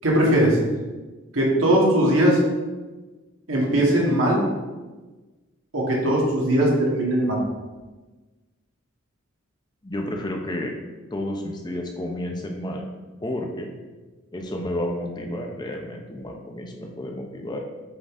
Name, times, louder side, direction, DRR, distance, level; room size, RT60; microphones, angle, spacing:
voice 1, 0.0-0.6 1.3-2.4 3.5-4.4 5.7-7.4, right 1 dB, 80° right, -3 dB, 1.6 m, -19 dB
voice 2, 9.8-10.7 11.1-12.9 13.2-13.7 14.3-17.6, left 1 dB, 20° left, 2 dB, 0.6 m, -31 dB
7.8 x 3.8 x 3.7 m, 1.2 s
head